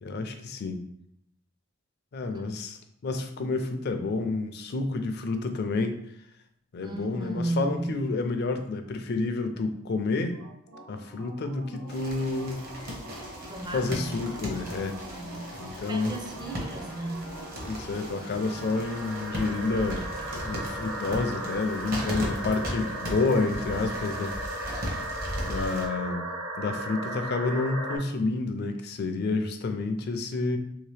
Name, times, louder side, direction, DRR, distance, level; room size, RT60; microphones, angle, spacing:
voice 1, 0.0-0.8 2.1-2.8 3.0-6.0 6.7-10.4 10.9-12.6 13.7-15.0 15.6-16.2 17.6-20.1 20.4-24.3 25.4-26.3 26.6-30.6, left 3 dB, 50° left, 7 dB, 0.4 m, -29 dB
voice 2, 6.8-8.0 13.5-14.2 15.1-15.6 15.9-17.5 23.3-24.1, right 1 dB, 20° right, 3 dB, 0.4 m, -35 dB
sound 1, 10.3-28.0, right 1 dB, 70° right, 0.9 m, -38 dB
sound 2, 11.9-25.9, equal, 45° right, 0.8 m, -38 dB
sound 3, 16.3-22.9, right 1 dB, 85° left, 0.8 m, -48 dB
3.0 x 2.8 x 3.3 m, 0.72 s
head